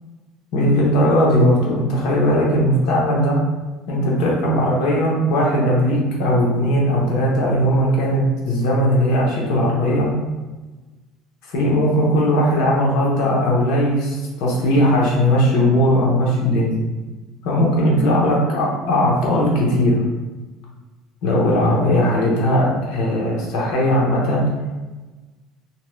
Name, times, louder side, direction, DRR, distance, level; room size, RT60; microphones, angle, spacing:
voice 1, 0.5-3.4 3.9-10.1 11.5-16.7 17.4-19.9 21.2-24.4, equal, 65° left, -3 dB, 0.9 m, -18 dB
2.7 x 2.2 x 3.1 m, 1.2 s
cardioid pair, 140°, 0 cm